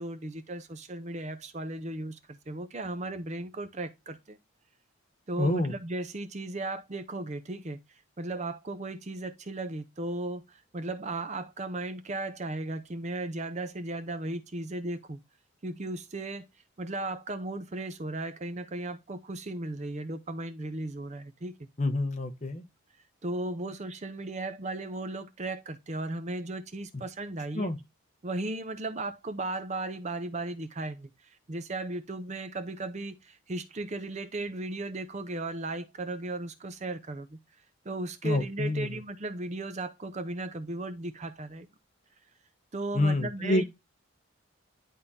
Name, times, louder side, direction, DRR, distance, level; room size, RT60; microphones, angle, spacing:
voice 1, 0.0-4.4 5.3-7.8 8.2-15.2 15.6-16.5 16.8-21.7 23.2-27.7 28.2-31.1 31.5-37.4 37.9-41.7 42.7-43.7, right 2 dB, 35° right, 0.5 m, -36 dB
voice 2, 5.4-5.7 21.8-22.6 27.5-27.8 38.2-38.9 42.9-43.6, left 2 dB, 35° left, 0.8 m, -27 dB
10.5 x 3.6 x 2.6 m
head